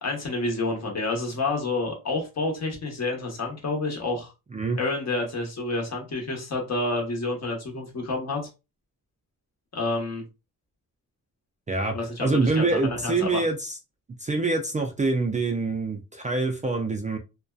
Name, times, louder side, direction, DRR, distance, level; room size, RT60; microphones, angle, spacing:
voice 1, 0.0-4.3 4.7-8.5 9.7-10.2 11.9-13.4, left 2 dB, 45° left, 0 dB, 1.0 m, -29 dB
voice 2, 11.7-13.8 14.2-17.2, right 3 dB, 20° right, 2 dB, 0.4 m, -25 dB
2.6 x 2.2 x 2.3 m, 0.28 s
cardioid pair, 95°, 35 cm